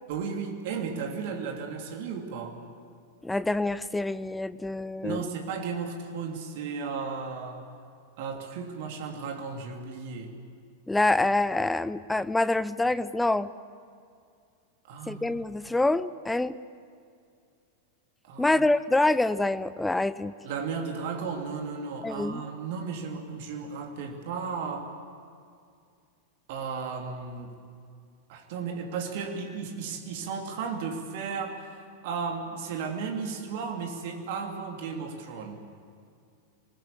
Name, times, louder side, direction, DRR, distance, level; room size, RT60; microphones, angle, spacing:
voice 1, 0.1-2.6 5.0-7.6 8.2-10.3 14.8-15.4 18.2-18.7 20.4-24.9 26.5-27.5 28.3-31.6 32.0-35.6, right 5 dB, 50° right, 3 dB, 3.1 m, -34 dB
voice 2, 3.2-5.2 10.9-13.5 15.1-16.6 18.4-20.3 22.0-22.4, left 2 dB, 5° left, 16 dB, 0.7 m, -26 dB
26.0 x 20.0 x 8.5 m, 2.3 s
figure-of-eight pair, 90°, 0 cm